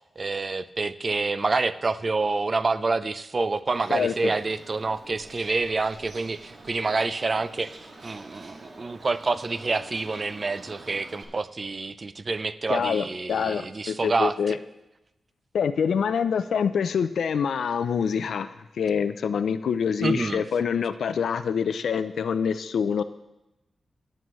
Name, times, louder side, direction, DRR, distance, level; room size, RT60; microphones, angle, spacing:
voice 1, 0.2-7.7 8.0-14.3 20.0-20.4, right 3 dB, 40° right, 13 dB, 0.4 m, -27 dB
Bird, 3.7-11.2, right 2 dB, 60° right, 1.8 m, -47 dB
voice 2, 3.9-4.3 12.7-14.6 15.5-23.0, left 7 dB, 90° left, 12 dB, 0.4 m, -26 dB
17.0 x 7.7 x 3.1 m, 0.94 s
wide cardioid pair, 90°, 0 cm